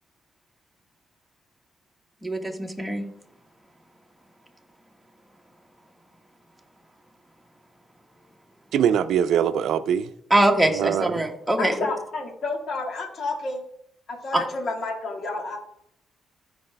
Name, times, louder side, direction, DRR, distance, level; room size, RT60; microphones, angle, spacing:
voice 1, 2.2-3.0 10.3-11.9 14.3-14.4, right 1 dB, ahead, 1.4 m, -22 dB
voice 2, 8.7-10.1 10.6-11.3, right 9 dB, 75° right, 0.5 m, -23 dB
voice 3, 11.6-13.6 14.1-15.6, left 3 dB, 55° left, 2.0 m, -30 dB
14.5 x 4.8 x 3.4 m
cardioid pair, 90°, 0 cm